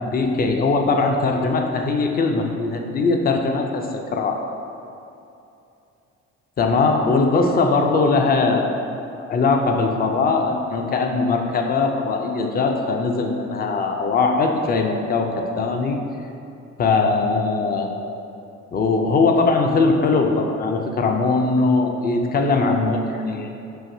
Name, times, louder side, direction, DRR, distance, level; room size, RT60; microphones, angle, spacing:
voice 1, 0.0-4.4 6.6-8.7 9.2-16.0 16.8-17.9 18.7-23.5, left 3 dB, 30° left, 3 dB, 0.4 m, -20 dB
5.6 x 2.6 x 2.7 m, 2.7 s
cardioid pair, 90°, 30 cm